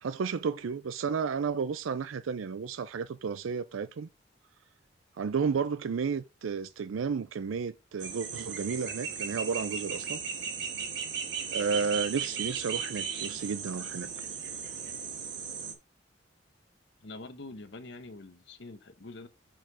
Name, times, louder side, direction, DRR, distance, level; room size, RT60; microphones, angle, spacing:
voice 1, 0.0-4.1 5.2-10.2 11.5-14.1, right 5 dB, 80° right, 0.4 m, -32 dB
sound 1, 8.0-15.7, right 6 dB, 60° right, 1.7 m, -36 dB
voice 2, 17.0-19.3, left 2 dB, 60° left, 1.0 m, -45 dB
6.0 x 4.7 x 4.9 m
head